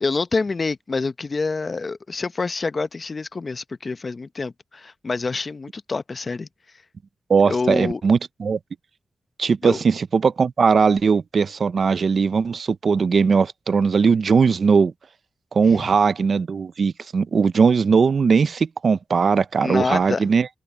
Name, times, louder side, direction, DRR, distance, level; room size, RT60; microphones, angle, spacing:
voice 1, 0.0-6.5 7.5-8.0 9.6-9.8 15.6-15.9 19.6-20.3, left 4 dB, 45° left, 0.8 m, -27 dB
voice 2, 7.3-8.6 9.4-14.9 15.5-20.5, right 5 dB, 65° right, 0.6 m, -19 dB
cardioid pair, 70°, 0 cm